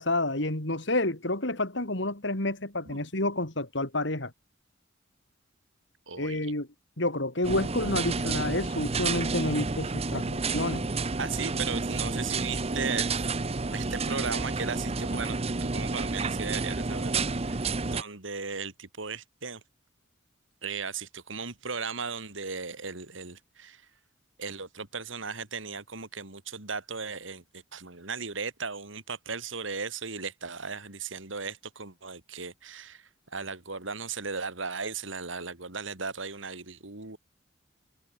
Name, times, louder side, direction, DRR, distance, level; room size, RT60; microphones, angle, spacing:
voice 1, 0.0-4.3 6.2-6.7 7.0-10.9, left 2 dB, 65° left, 3.4 m, -29 dB
voice 2, 6.1-6.4 11.2-13.1 13.7-19.6 20.6-23.8 24.4-37.2, right 5 dB, 75° right, 3.2 m, -36 dB
sound 1, 7.4-18.0, right 3 dB, 30° right, 0.8 m, -30 dB
head